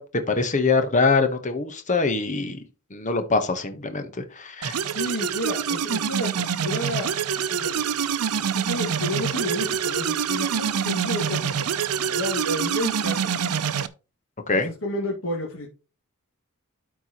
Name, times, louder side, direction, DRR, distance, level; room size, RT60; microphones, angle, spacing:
voice 1, 0.0-2.6 2.9-4.8 14.5-14.7, left 4 dB, 35° left, 1.1 m, -24 dB
sound 1, 4.6-13.9, right 7 dB, 80° right, 0.6 m, -26 dB
voice 2, 4.9-7.2 7.5-7.8 8.4-11.7 12.1-13.3 14.7-15.7, left 1 dB, 65° left, 2.0 m, -31 dB
12.5 x 4.6 x 3.0 m
head